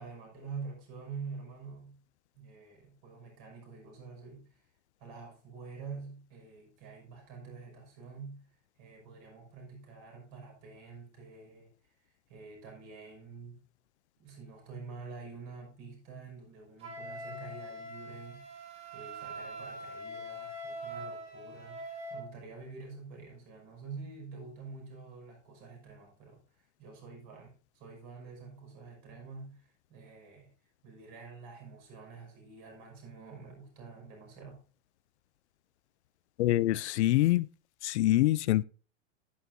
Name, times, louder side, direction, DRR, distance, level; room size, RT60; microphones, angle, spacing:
voice 1, 0.0-2.0 2.3-4.6 5.0-8.4 8.8-11.7 12.0-13.6 14.2-30.5 30.8-34.6, right 4 dB, 40° right, 6.1 m, -47 dB
Wind instrument woodwind instrument, 16.8-22.3, equal, 15° right, 2.7 m, -43 dB
voice 2, 36.4-37.5 37.8-38.6, left 15 dB, 70° left, 0.5 m, -25 dB
11.0 x 10.5 x 2.7 m
supercardioid pair, 160°, 36 cm